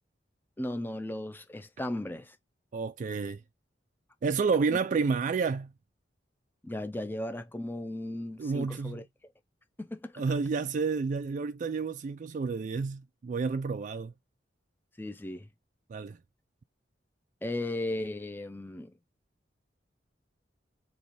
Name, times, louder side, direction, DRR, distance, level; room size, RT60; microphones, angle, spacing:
voice 1, 0.6-2.4 6.6-9.0 9.8-10.2 15.0-15.5 17.4-18.9, left 1 dB, 10° left, 0.6 m, -36 dB
voice 2, 2.7-3.4 4.2-5.7 8.4-9.0 10.2-14.1 15.9-16.2, right 5 dB, 45° right, 0.3 m, -30 dB
3.3 x 3.0 x 4.0 m
head